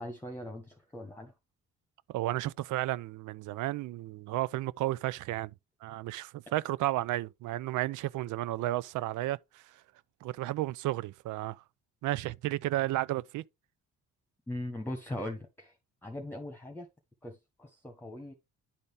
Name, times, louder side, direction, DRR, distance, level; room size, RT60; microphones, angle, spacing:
voice 1, 0.0-1.3 14.5-15.8 16.0-16.9 17.2-18.3, left 1 dB, 5° left, 1.5 m, -40 dB
voice 2, 2.1-5.5 5.8-9.8 10.2-11.6 12.0-13.4, right 16 dB, 80° right, 0.5 m, -33 dB
10.5 x 4.0 x 3.5 m
cardioid pair, 90°, 30 cm